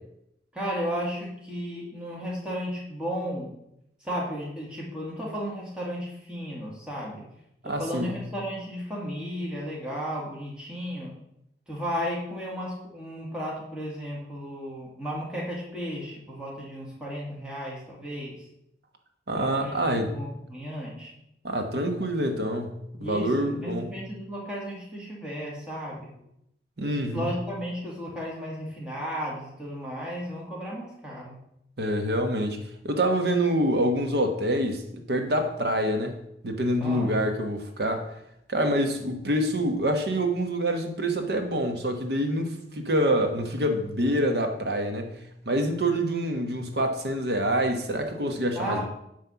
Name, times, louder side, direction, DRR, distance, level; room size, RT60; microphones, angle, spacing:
voice 1, 0.5-3.5 4.0-7.3 7.6-11.1 11.7-18.4 19.3-21.1 23.0-26.1 26.8-31.4 36.8-37.1 48.6-48.9, equal, 5° right, -4 dB, 1.9 m, -34 dB
voice 2, 7.6-8.2 19.3-20.1 21.4-23.9 26.8-27.3 31.8-34.8 35.1-36.2 36.4-38.1 38.5-45.1 45.4-48.9, right 1 dB, 65° right, 5 dB, 1.2 m, -26 dB
9.5 x 3.4 x 6.9 m, 0.80 s
head